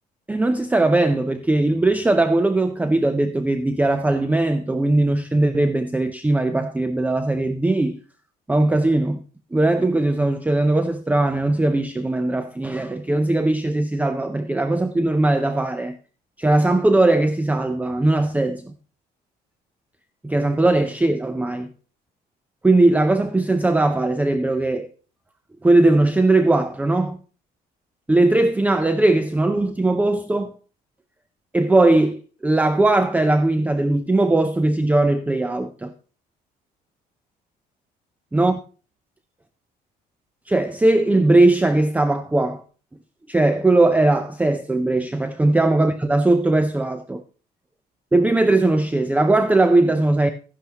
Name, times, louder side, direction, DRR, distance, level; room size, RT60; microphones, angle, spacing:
voice 1, 0.3-8.0 8.5-9.2 9.5-16.0 16.4-18.7 20.2-21.7 22.6-24.9 25.6-27.2 28.1-30.5 31.5-35.9 38.3-38.5 40.5-42.6 43.3-47.2 48.1-50.3, right 2 dB, 10° right, 0.6 m, -19 dB
12.0 x 10.5 x 2.9 m
cardioid pair, 110°, 17 cm